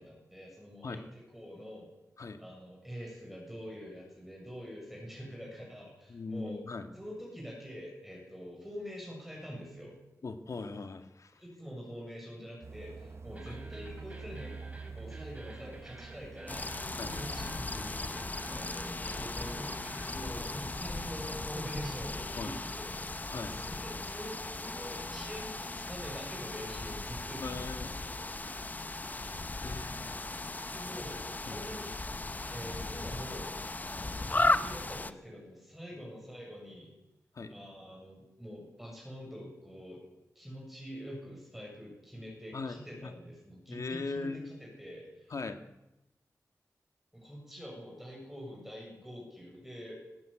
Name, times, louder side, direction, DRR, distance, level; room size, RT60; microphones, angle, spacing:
voice 1, 0.0-1.9 2.4-6.6 6.9-9.9 11.4-16.7 17.1-18.1 18.5-27.6 30.7-31.2 31.5-32.0 32.5-33.5 33.8-37.0 37.5-40.0 40.4-45.3 47.1-49.9, equal, 5° right, -3 dB, 7.4 m, -45 dB
voice 2, 6.1-6.9 10.2-11.4 13.5-13.6 17.0-17.2 22.4-22.5 23.3-23.5 27.4-30.5 31.5-31.6 37.3-37.6 42.5-43.1 43.7-44.6 45.3-45.6, left 3 dB, 60° left, 8 dB, 1.9 m, -41 dB
sound 1, 12.6-19.3, right 4 dB, 45° right, 0.8 m, -47 dB
sound 2, 13.3-20.2, right 1 dB, 20° right, 5.1 m, -50 dB
sound 3, 16.5-35.1, left 2 dB, 30° left, 0.9 m, -36 dB
19.5 x 15.5 x 8.6 m, 0.96 s
wide cardioid pair, 130°, 6 cm